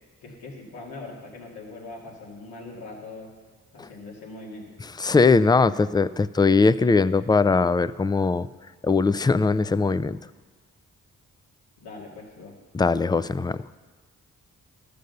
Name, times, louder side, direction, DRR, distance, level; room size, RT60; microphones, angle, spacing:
voice 1, 0.2-3.3 3.7-4.7 11.8-12.6, left 3 dB, 85° left, -2 dB, 2.3 m, -41 dB
voice 2, 5.0-8.5 8.8-10.2 12.7-13.6, left 4 dB, 10° left, 16 dB, 0.3 m, -20 dB
13.0 x 6.8 x 6.6 m, 1.4 s
supercardioid pair, 45°, 37 cm